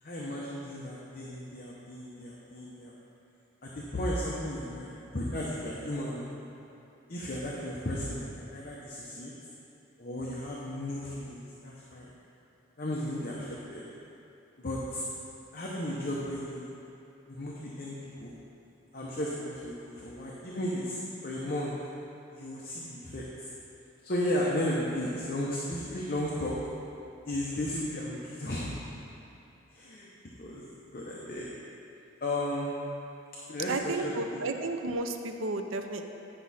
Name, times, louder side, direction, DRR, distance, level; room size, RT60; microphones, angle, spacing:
voice 1, 0.0-2.9 3.6-6.3 7.1-9.3 10.0-12.1 12.8-13.8 14.6-15.0 15.5-16.7 17.3-18.3 18.9-21.7 22.3-23.5 24.0-26.6 27.3-28.8 29.7-30.1 30.4-31.5 32.2-32.7 33.5-34.4, left 1 dB, 45° left, -5 dB, 0.8 m, -34 dB
voice 2, 33.7-36.0, right 2 dB, 90° right, 6 dB, 0.6 m, -32 dB
9.9 x 6.0 x 4.2 m, 2.8 s
head